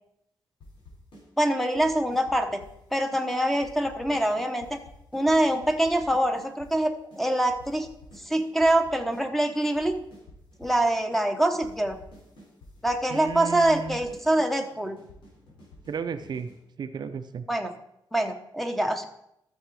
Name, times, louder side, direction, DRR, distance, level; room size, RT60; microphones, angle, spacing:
sound 1, 0.6-1.2 1.5-2.8 3.1-3.3 3.5-6.7 7.1-7.2 7.5-9.2 9.5-10.8 11.1-11.2 11.5-16.6, left 1 dB, 90° left, 3.9 m, -50 dB
voice 1, 1.4-2.6 2.9-4.8 5.1-7.9 8.2-9.9 10.6-12.0 12.8-15.0 17.5-17.7 18.1-19.0, right 1 dB, 5° left, 5 dB, 1.1 m, -25 dB
voice 2, 13.1-14.0 15.9-16.5 16.8-17.4, right 6 dB, 60° right, 9 dB, 0.6 m, -34 dB
13.0 x 7.0 x 4.9 m, 0.78 s
wide cardioid pair, 125°, 8 cm